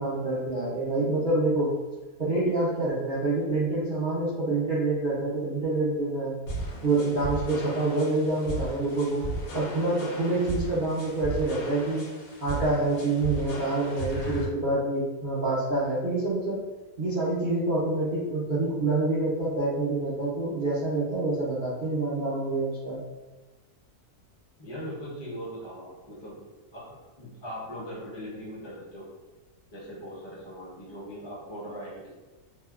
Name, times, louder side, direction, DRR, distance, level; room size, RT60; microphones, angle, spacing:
voice 1, 0.0-1.7 2.2-6.4 6.8-9.2 9.5-12.1 12.4-16.6 17.0-23.0, right 2 dB, 60° right, -10 dB, 0.5 m, -27 dB
sound 1, 6.5-14.5, right 1 dB, 70° left, 1.1 m, -36 dB
voice 2, 24.6-29.1 29.7-32.1, equal, 25° left, -7 dB, 0.6 m, -40 dB
2.8 x 2.1 x 2.3 m, 1.2 s
omnidirectional pair, 1.6 m